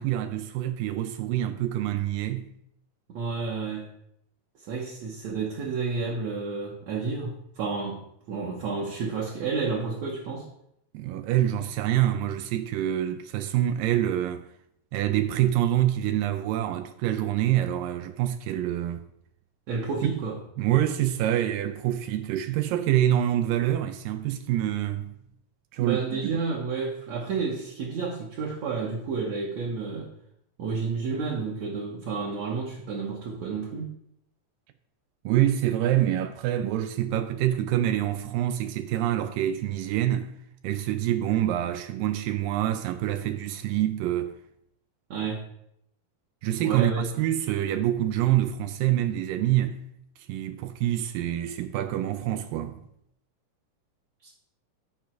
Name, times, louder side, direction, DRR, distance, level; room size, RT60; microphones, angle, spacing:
voice 1, 0.0-2.5 10.9-14.5 14.9-19.0 20.0-20.1 20.6-25.2 25.7-26.3 35.3-40.3 40.6-44.4 46.4-49.8 50.3-52.8, right 12 dB, 85° right, 2.3 m, -26 dB
voice 2, 3.1-3.9 4.6-8.0 8.3-10.5 19.7-20.4 25.8-30.1 30.6-33.9 45.1-45.4 46.6-47.1 54.2-54.3, right 4 dB, 60° right, 2.1 m, -30 dB
11.5 x 4.8 x 4.5 m
omnidirectional pair, 3.9 m